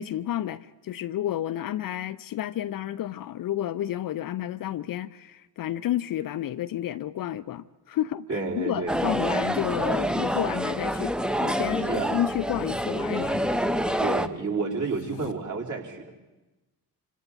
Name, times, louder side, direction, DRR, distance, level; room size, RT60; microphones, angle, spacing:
voice 1, 0.0-11.1 11.4-13.5, left 12 dB, 45° left, 0.7 m, -31 dB
voice 2, 8.3-9.0 9.4-9.5 11.9-12.1 14.0-16.2, right 4 dB, 40° right, 4.7 m, -30 dB
sound 1, 8.9-14.3, equal, ahead, 1.0 m, -27 dB
sound 2, 14.7-15.3, left 10 dB, 80° left, 1.2 m, -44 dB
28.0 x 26.0 x 4.2 m
figure-of-eight pair, 45°, 47 cm